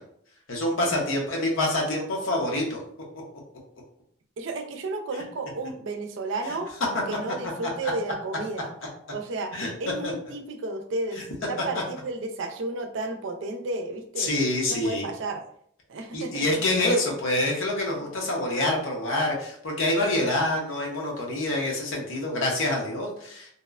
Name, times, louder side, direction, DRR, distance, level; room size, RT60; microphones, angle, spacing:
voice 1, 0.5-2.8 9.5-9.7 14.2-15.1 16.1-23.5, left 1 dB, 90° left, -1 dB, 0.7 m, -26 dB
voice 2, 4.4-6.7 7.1-8.7 9.1-9.5 9.8-11.2 11.5-14.3 14.7-15.4 15.9-16.5, right 2 dB, 70° right, 4 dB, 0.4 m, -32 dB
2.8 x 2.0 x 2.3 m, 0.65 s
head